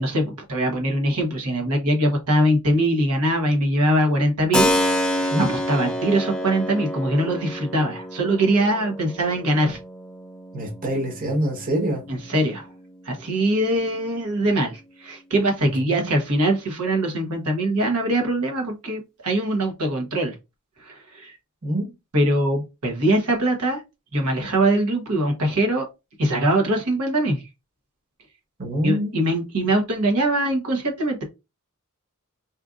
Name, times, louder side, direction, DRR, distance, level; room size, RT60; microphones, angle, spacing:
voice 1, 0.0-4.7 5.1-9.8 12.1-12.7 13.0-20.3 20.8-21.4 22.1-23.8 24.1-25.9 26.2-27.4 28.8-31.2, right 1 dB, 90° right, 1.1 m, -22 dB
Keyboard (musical), 4.5-13.1, left 1 dB, 5° left, 0.5 m, -28 dB
voice 2, 10.5-12.0 15.9-16.1 21.6-21.9 28.6-29.1, right 1 dB, 40° right, 1.2 m, -25 dB
4.2 x 2.5 x 2.5 m
head